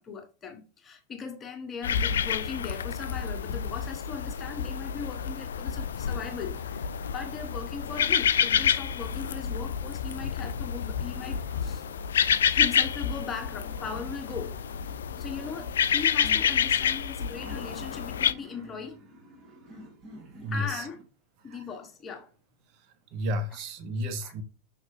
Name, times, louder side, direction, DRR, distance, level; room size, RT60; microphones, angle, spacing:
voice 1, 0.0-11.8 12.5-14.5 15.2-19.0 20.5-21.0 21.4-22.3 23.5-23.6 24.2-24.3, left 5 dB, 20° left, 1.4 m, -39 dB
sound 1, 1.8-18.3, left 8 dB, 65° left, 0.3 m, -28 dB
sound 2, 5.8-21.0, right 1 dB, 25° right, 2.3 m, -50 dB
voice 2, 20.4-20.8 23.1-24.4, equal, 40° right, 1.2 m, -32 dB
6.3 x 5.8 x 2.8 m
figure-of-eight pair, 90°, 0 cm